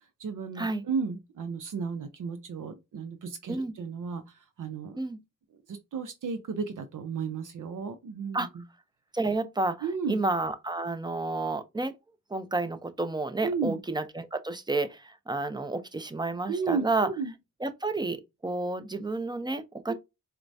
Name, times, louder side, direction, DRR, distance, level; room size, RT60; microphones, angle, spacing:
voice 1, 0.2-5.0 5.7-8.6 9.8-10.2 13.4-13.8 16.5-17.3 19.9-20.0, right 5 dB, 65° right, 0.6 m, -33 dB
voice 2, 9.1-11.9 12.3-17.1 17.6-19.9, right 2 dB, 15° right, 0.5 m, -30 dB
4.3 x 2.1 x 2.6 m
cardioid pair, 45°, 33 cm